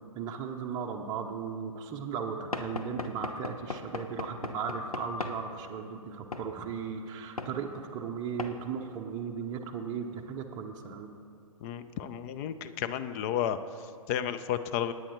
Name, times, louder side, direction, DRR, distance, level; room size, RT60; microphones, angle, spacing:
voice 1, 0.1-11.1, right 6 dB, 20° right, 1 dB, 0.7 m, -36 dB
Knock / Wood, 2.5-5.4 6.3-6.5 7.4-7.6 8.4-8.6, left 3 dB, 85° left, 0.8 m, -37 dB
voice 2, 11.6-13.6 14.1-14.9, left 10 dB, 25° left, 12 dB, 0.4 m, -32 dB
18.5 x 9.2 x 3.1 m, 2.4 s
figure-of-eight pair, 120°, 18 cm